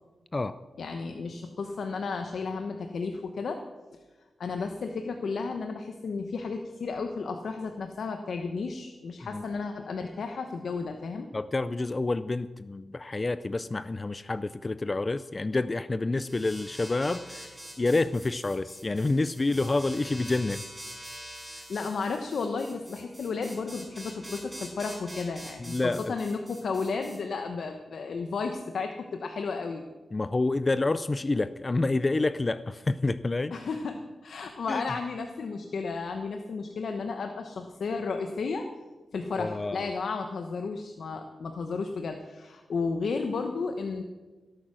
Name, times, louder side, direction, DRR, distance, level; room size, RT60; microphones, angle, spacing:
voice 1, 0.8-3.6 3.9-4.0 4.4-11.3 21.4-25.8 26.1-29.8 33.5-38.7 39.1-44.0, left 4 dB, 75° left, 5 dB, 1.0 m, -33 dB
voice 2, 11.3-20.6 25.6-26.1 30.1-33.5 34.7-34.8 39.4-39.9, left 2 dB, 30° left, 14 dB, 0.4 m, -28 dB
sound 1, 16.2-27.2, equal, 5° right, 5.3 m, -45 dB
17.0 x 8.9 x 6.2 m, 1.3 s
wide cardioid pair, 100°, 0 cm